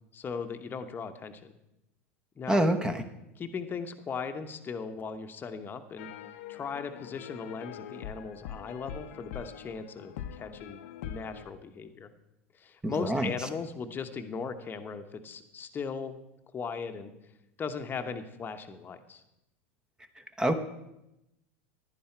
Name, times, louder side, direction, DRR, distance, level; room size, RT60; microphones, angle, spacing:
voice 1, 0.1-1.6 2.4-2.6 3.4-6.1 6.5-12.1 12.5-16.2 16.5-17.1 17.6-19.2, left 5 dB, 25° left, 8 dB, 1.0 m, -38 dB
voice 2, 2.5-3.0 12.8-13.3 20.4-20.5, right 1 dB, 10° right, 8 dB, 1.0 m, -26 dB
sound 1, 6.0-11.5, left 10 dB, 70° left, 0.7 m, -43 dB
11.0 x 10.0 x 4.4 m, 0.89 s
hypercardioid pair, 100°, 7 cm